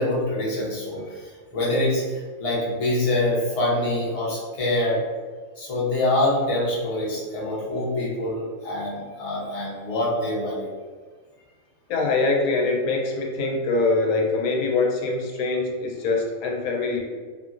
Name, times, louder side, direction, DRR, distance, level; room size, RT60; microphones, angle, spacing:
voice 1, 0.0-5.0 5.6-10.7, left 1 dB, 30° left, -6 dB, 0.7 m, -25 dB
voice 2, 11.9-17.0, left 3 dB, 90° left, 0 dB, 1.1 m, -23 dB
2.9 x 2.6 x 2.4 m, 1.5 s
omnidirectional pair, 1.5 m